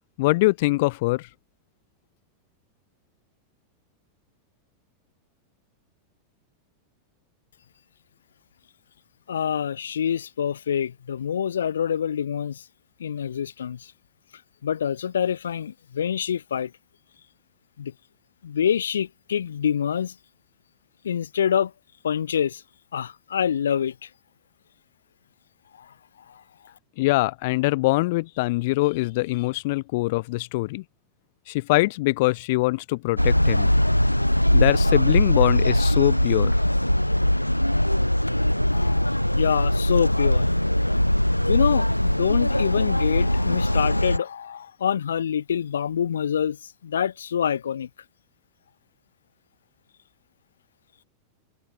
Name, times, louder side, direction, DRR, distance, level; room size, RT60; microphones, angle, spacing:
voice 1, 0.2-1.3 27.0-30.8 31.5-33.7 34.5-36.5, left 21 dB, 50° left, 0.7 m, -23 dB
voice 2, 9.3-12.6 13.0-13.9 14.6-16.7 17.8-17.9 18.4-20.1 21.0-21.7 22.0-22.6 22.9-24.1 25.8-25.9 26.3-26.4 38.7-40.5 41.5-47.9, left 8 dB, 65° left, 2.8 m, -26 dB
sound 1, 33.2-44.2, left 1 dB, 90° left, 2.1 m, -21 dB
figure-of-eight pair, 90°, 0 cm